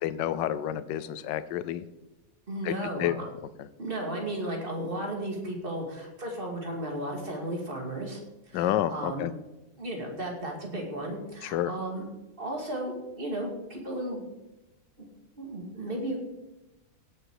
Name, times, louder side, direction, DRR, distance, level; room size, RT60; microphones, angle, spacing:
voice 1, 0.0-1.8 2.6-3.1 8.5-9.3 11.4-11.7, left 12 dB, 80° left, 14 dB, 1.3 m, -29 dB
voice 2, 2.5-3.2 3.8-8.2 8.5-9.3 9.8-12.0 12.4-14.2 15.0-15.1 15.3-16.2, right 1 dB, 30° right, 1 dB, 2.5 m, -34 dB
17.0 x 7.1 x 4.8 m, 0.98 s
omnidirectional pair, 1.9 m